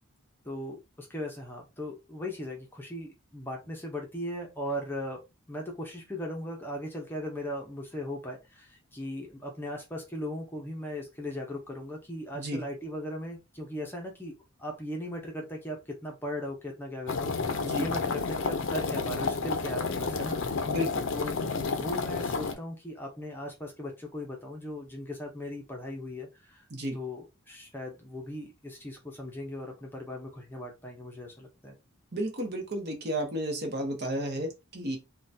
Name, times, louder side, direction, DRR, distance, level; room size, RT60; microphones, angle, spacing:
voice 1, 0.4-5.2 5.5-14.3 14.6-20.4 21.1-26.7 26.9-31.8, left 1 dB, 10° left, 0.6 m, -38 dB
sound 1, 17.1-22.5, left 4 dB, 60° left, 0.5 m, -30 dB
voice 2, 20.7-21.1 26.7-27.0 32.1-35.0, equal, 50° right, 0.9 m, -32 dB
3.7 x 2.2 x 2.6 m
head